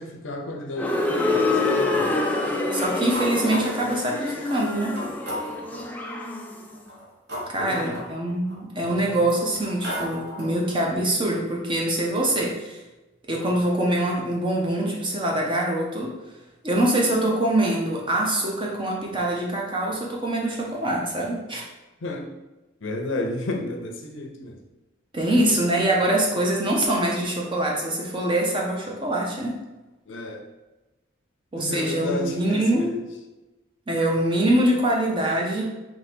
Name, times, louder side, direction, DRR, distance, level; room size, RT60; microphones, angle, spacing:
voice 1, 0.0-2.1 7.6-8.0 8.9-9.0 22.0-22.3 22.8-24.6 30.1-30.4 31.5-32.6 32.9-33.0, left 2 dB, 70° left, 3 dB, 0.6 m, -32 dB
sound 1, 0.8-6.7, left 2 dB, 10° left, 0.3 m, -26 dB
voice 2, 2.7-5.0 7.5-12.8 13.3-16.2 16.6-21.6 25.1-29.6 31.5-33.0 33.9-35.6, right 1 dB, 25° right, -1 dB, 0.7 m, -24 dB
sound 2, 3.1-3.9 4.6-4.7 5.0-5.9 6.7-8.6 9.2-10.6, equal, 55° right, 1.0 m, -35 dB
3.8 x 3.0 x 4.3 m, 1.1 s
head